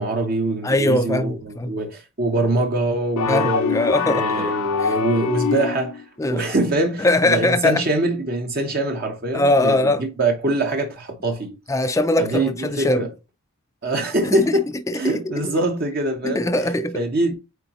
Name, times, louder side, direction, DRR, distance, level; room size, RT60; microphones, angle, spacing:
voice 1, 0.0-6.0 6.3-11.6 12.2-13.1 13.8-14.7 14.9-16.4 16.9-17.4, right 2 dB, 45° right, 0.8 m, -23 dB
voice 2, 0.6-1.8 3.3-4.5 4.8-4.9 6.2-6.5 7.0-7.8 9.3-10.0 11.7-13.1 14.2-14.6 14.9-15.2 16.2-17.0, left 1 dB, 15° left, 0.4 m, -21 dB
sound 1, 3.2-6.0, left 5 dB, 70° left, 0.5 m, -24 dB
8.2 x 3.9 x 2.9 m
head